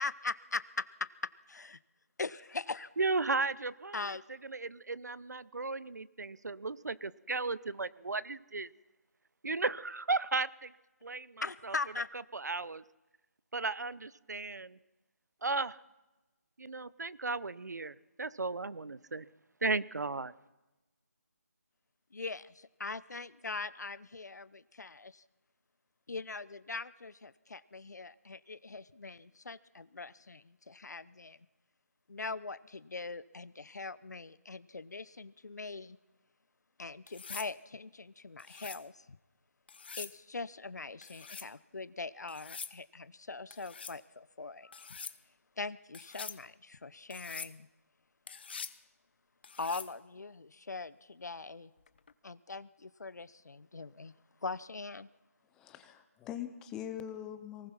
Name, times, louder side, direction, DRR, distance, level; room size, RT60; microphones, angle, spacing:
voice 1, 0.0-1.8 2.2-2.9 3.9-4.2 11.4-12.1 22.1-25.2 26.1-31.4 32.1-36.0 36.8-39.2 40.0-45.0 45.6-47.7 49.6-51.7 52.2-54.1 54.4-55.1, left 3 dB, 80° left, 17 dB, 0.8 m, -41 dB
voice 2, 3.0-4.0 4.5-8.7 9.4-10.7 11.0-11.7 12.4-12.8 13.5-14.8 15.4-15.8 16.6-19.3 19.6-20.3, right 3 dB, 80° right, 18 dB, 0.9 m, -35 dB
sound 1, 37.1-37.5 38.4-38.8 39.7-40.2 41.0-41.5 42.3-42.8 43.5-44.0 44.7-45.2 45.9-46.4 47.1-47.5 48.3-48.8 49.4-49.9 51.9-52.1, left 6 dB, 35° left, 0.9 m, -45 dB
voice 3, 55.5-57.7, left 10 dB, 5° left, 9 dB, 0.6 m, -42 dB
23.5 x 19.0 x 5.9 m, 1.1 s
figure-of-eight pair, 170°, 9 cm